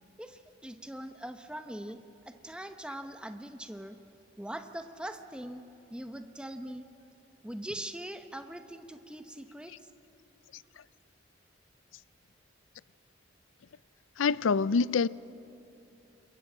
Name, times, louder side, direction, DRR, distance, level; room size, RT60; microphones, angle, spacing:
voice 1, 0.2-2.0 2.2-4.0 4.4-5.6 5.9-6.8 7.4-9.9, right 1 dB, 5° right, 0.9 m, -42 dB
voice 2, 14.2-15.1, left 5 dB, 85° left, 0.4 m, -25 dB
26.5 x 22.5 x 7.4 m
head